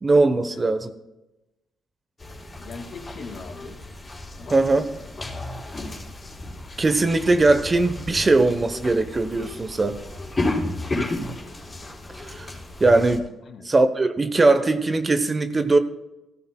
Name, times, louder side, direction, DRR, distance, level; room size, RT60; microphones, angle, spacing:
voice 1, 0.0-0.9 4.5-4.9 6.8-10.0 12.2-12.5 12.8-13.3 13.6-15.8, right 2 dB, 25° right, 0.9 m, -20 dB
sound 1, 2.2-13.2, left 2 dB, 25° left, 3.8 m, -33 dB
voice 2, 2.6-3.8 4.4-4.8 13.4-13.7, left 4 dB, 55° left, 2.1 m, -40 dB
16.0 x 14.5 x 2.3 m
cardioid pair, 90°, 0 cm